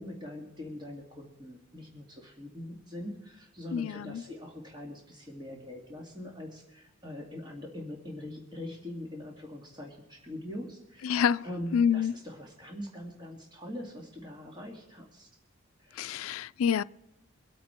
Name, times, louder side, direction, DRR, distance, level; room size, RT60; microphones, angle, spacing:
voice 1, 0.0-15.3 15.8-16.4, left 1 dB, 20° right, 2.1 m, -43 dB
voice 2, 3.7-4.2 11.0-11.5 11.7-12.2 16.0-16.8, left 7 dB, 80° left, 0.4 m, -27 dB
24.5 x 8.5 x 4.4 m
head